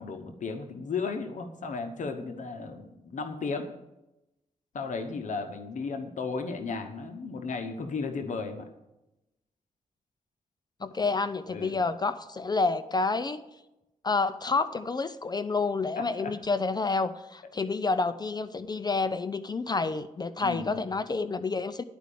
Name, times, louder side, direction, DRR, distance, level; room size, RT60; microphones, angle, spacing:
voice 1, 0.0-3.7 4.7-8.7 11.5-11.8 16.0-16.3 20.4-20.8, left 4 dB, 65° left, 6 dB, 1.0 m, -34 dB
voice 2, 10.8-13.4 14.0-21.8, left 3 dB, 30° left, 12 dB, 0.5 m, -29 dB
10.5 x 5.1 x 8.4 m, 0.94 s
cardioid pair, 95°, 14 cm